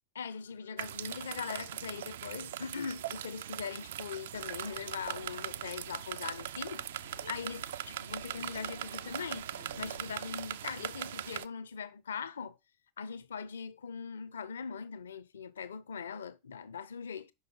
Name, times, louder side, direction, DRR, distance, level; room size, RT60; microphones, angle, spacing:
voice 1, 0.1-9.5 9.8-12.6 13.0-17.3, left 6 dB, 65° left, 0.6 m, -41 dB
sound 1, 0.8-11.5, right 11 dB, 60° right, 0.3 m, -40 dB
sound 2, 4.3-10.1, right 1 dB, 85° right, 3.2 m, -52 dB
5.6 x 5.6 x 5.4 m
figure-of-eight pair, 90°, 0 cm